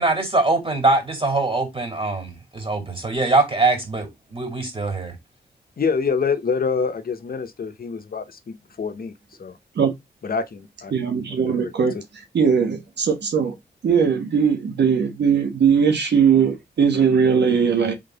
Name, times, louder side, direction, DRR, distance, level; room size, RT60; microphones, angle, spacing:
voice 1, 0.0-5.2, right 2 dB, 30° right, 3.0 m, -22 dB
voice 2, 5.8-9.1 9.4-9.6 10.2-10.9 11.4-11.7, left 5 dB, 60° left, 0.8 m, -26 dB
voice 3, 10.9-12.0 12.3-13.5 13.8-17.9, right 6 dB, 85° right, 1.3 m, -19 dB
3.8 x 3.7 x 3.8 m
cardioid pair, 55°, 17 cm